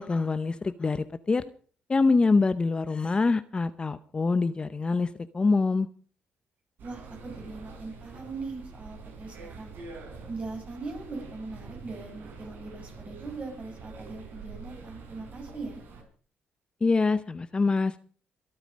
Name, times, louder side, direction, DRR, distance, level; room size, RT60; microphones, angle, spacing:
voice 1, 0.0-1.4 1.9-5.9 16.8-18.0, left 3 dB, 25° left, 13 dB, 0.7 m, -25 dB
voice 2, 6.8-9.7 10.3-15.8, right 3 dB, 35° right, 2 dB, 6.4 m, -40 dB
sound 1, 6.8-16.0, right 4 dB, 65° right, 4.6 m, -45 dB
24.5 x 8.9 x 5.1 m, 0.43 s
cardioid pair, 100°, 4 cm